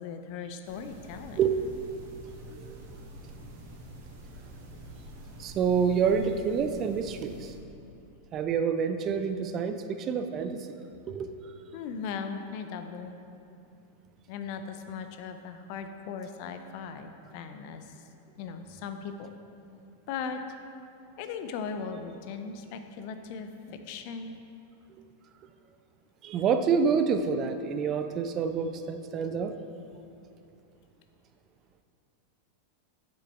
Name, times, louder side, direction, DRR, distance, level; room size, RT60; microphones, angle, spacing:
voice 1, 0.0-1.4 11.7-13.2 14.3-18.1 18.4-19.3 20.1-20.4 21.2-24.4, left 6 dB, 45° left, 8 dB, 0.4 m, -38 dB
sound 1, 0.6-7.6, equal, 50° right, 1.2 m, -47 dB
voice 2, 2.5-3.0 5.4-7.5 8.3-10.7 11.1-11.3 26.2-29.5, right 6 dB, 30° right, 8 dB, 0.4 m, -28 dB
7.4 x 6.2 x 3.4 m, 2.6 s
figure-of-eight pair, 90°, 0 cm